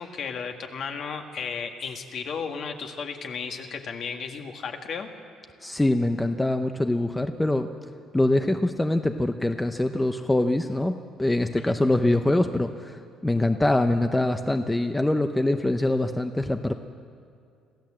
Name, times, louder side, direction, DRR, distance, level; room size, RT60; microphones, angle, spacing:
voice 1, 0.0-5.1 11.6-11.8, left 6 dB, 50° left, 4 dB, 1.9 m, -34 dB
voice 2, 5.6-7.7 8.1-16.7, left 1 dB, 10° left, 7 dB, 0.7 m, -24 dB
26.0 x 16.0 x 7.6 m, 2.4 s
cardioid pair, 145°, 0 cm